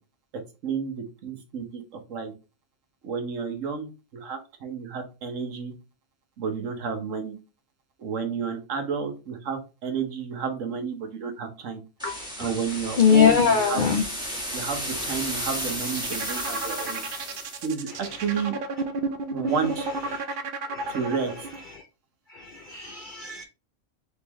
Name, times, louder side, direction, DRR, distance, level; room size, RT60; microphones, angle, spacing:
voice 1, 0.6-1.8 2.1-2.3 3.0-5.7 6.4-7.3 8.0-11.8 12.4-13.8 14.5-17.0 17.6-17.9 18.2-18.6 19.3-19.9 20.9-21.5, right 5 dB, 75° right, 6 dB, 1.3 m, -31 dB
voice 2, 12.0-12.5 13.0-14.0 14.3-14.4 15.2-15.4 16.8-17.0 20.1-20.2 20.7-21.0 22.3-23.4, left 6 dB, 60° left, 5 dB, 0.5 m, -23 dB
sound 1, 12.0-17.7, equal, 5° right, 1.1 m, -33 dB
sound 2, 15.4-21.6, right 3 dB, 55° right, 0.6 m, -32 dB
4.0 x 3.7 x 2.9 m, 0.29 s
omnidirectional pair, 1.4 m